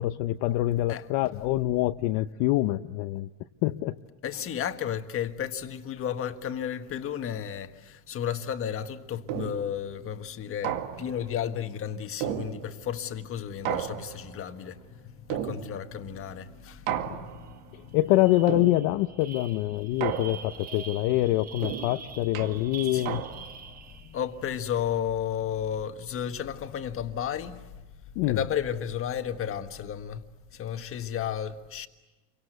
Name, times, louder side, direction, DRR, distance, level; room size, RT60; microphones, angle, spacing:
voice 1, 0.0-3.3 3.6-4.0 17.0-17.2 17.9-23.2 28.2-28.4, left 16 dB, 60° left, 0.8 m, -25 dB
voice 2, 4.2-18.0 19.7-19.9 22.9-23.2 23.6-30.2 30.5-31.9, left 9 dB, 30° left, 1.6 m, -33 dB
sound 1, 9.3-9.8 10.6-11.3 12.2-13.0 13.6-14.4 15.3-16.0 16.9-17.6 18.5-19.1 20.0-20.7 21.6-23.7, right 10 dB, 70° right, 2.1 m, -34 dB
sound 2, 17.4-17.6 17.9-24.3, right 6 dB, 20° right, 1.1 m, -45 dB
29.5 x 24.5 x 8.1 m
supercardioid pair, 145°, 43 cm